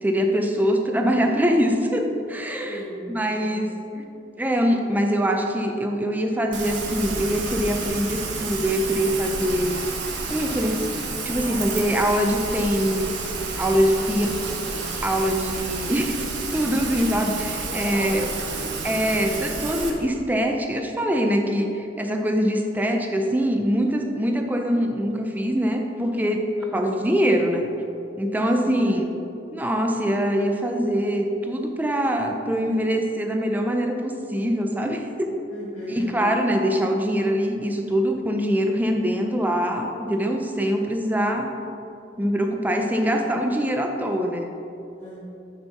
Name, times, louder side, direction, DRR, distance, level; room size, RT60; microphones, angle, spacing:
voice 1, 0.0-2.8 3.1-4.1 4.4-9.8 10.3-10.9 11.2-13.1 13.6-14.6 15.0-16.2 16.5-18.3 18.8-26.4 26.7-27.6 28.2-29.1 29.5-35.4 35.9-41.5 42.2-44.5, equal, 10° right, 3 dB, 0.5 m, -23 dB
voice 2, 2.7-3.1 3.4-3.7 11.4-12.1 13.9-14.5 17.5-18.3 18.6-18.8 26.6-27.1 28.6-28.8 35.5-36.2 43.0-43.3 45.0-45.2, equal, 10° left, -14 dB, 1.6 m, -38 dB
Rain, 6.5-19.9, right 4 dB, 70° right, 1.0 m, -30 dB
6.7 x 4.5 x 5.6 m, 2.7 s
head